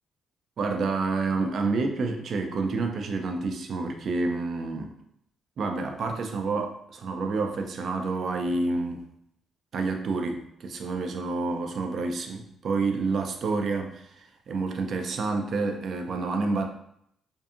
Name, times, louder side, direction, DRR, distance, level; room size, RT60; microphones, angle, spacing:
voice 1, 0.6-4.9 5.6-9.0 9.7-16.7, right 3 dB, 55° right, 4 dB, 0.4 m, -29 dB
2.6 x 2.5 x 2.4 m, 0.71 s
cardioid pair, 90°, 0 cm